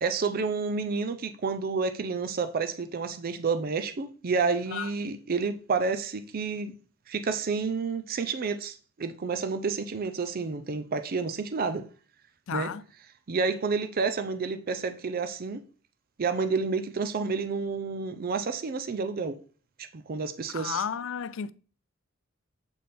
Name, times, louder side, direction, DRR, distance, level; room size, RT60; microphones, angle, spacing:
voice 1, 0.0-6.7 7.1-11.9 12.5-12.7 13.3-15.6 16.2-19.4 19.9-20.8, right 4 dB, 45° right, 0.5 m, -30 dB
voice 2, 12.5-12.8 20.5-21.5, left 7 dB, 65° left, 0.4 m, -32 dB
7.8 x 4.2 x 3.4 m
head